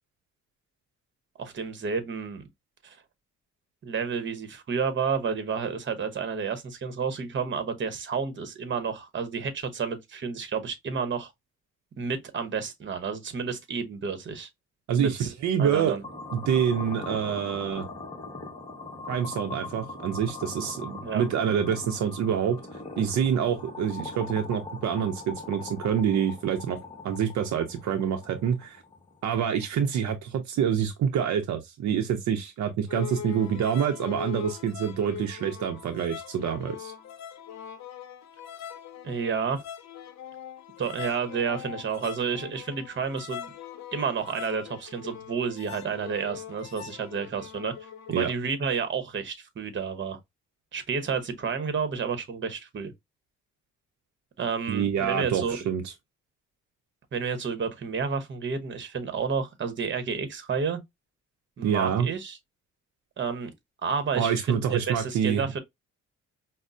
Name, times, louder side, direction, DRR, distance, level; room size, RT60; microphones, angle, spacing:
voice 1, 1.4-2.4 2.8-3.0 3.8-11.3 12.0-14.5 15.0-15.3 15.6-16.0 21.0-21.2 39.0-39.6 40.8-43.5 43.9-47.7 48.1-50.2 50.7-52.9 54.4-55.6 57.1-60.8 61.6-62.4 63.2-63.5 63.8-65.6, right 6 dB, 40° right, 0.9 m, -30 dB
voice 2, 14.9-16.0 16.3-17.9 19.1-22.6 23.0-26.8 27.0-28.8 29.2-36.9 48.1-48.3 54.7-55.9 61.6-62.1 64.2-65.4, right 8 dB, 65° right, 0.6 m, -27 dB
sound 1, 16.0-30.0, left 3 dB, 15° left, 1.1 m, -41 dB
sound 2, 32.9-48.3, left 9 dB, 65° left, 0.6 m, -41 dB
5.2 x 2.1 x 2.5 m
cardioid pair, 90°, 30 cm